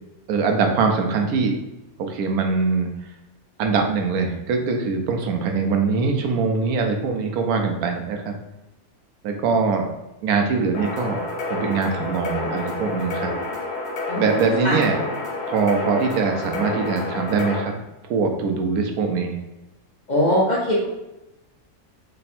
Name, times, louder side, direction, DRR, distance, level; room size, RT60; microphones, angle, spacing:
voice 1, 0.3-1.5 2.0-2.9 3.6-8.3 9.2-9.9 10.2-13.3 14.2-15.0 15.5-17.7 18.0-19.4, right 4 dB, 80° right, 4 dB, 1.1 m, -22 dB
sound 1, 10.7-17.6, left 2 dB, 85° left, 1.3 m, -29 dB
voice 2, 20.1-20.9, equal, 45° left, -6 dB, 0.5 m, -20 dB
3.3 x 2.2 x 4.2 m, 0.95 s
omnidirectional pair, 1.6 m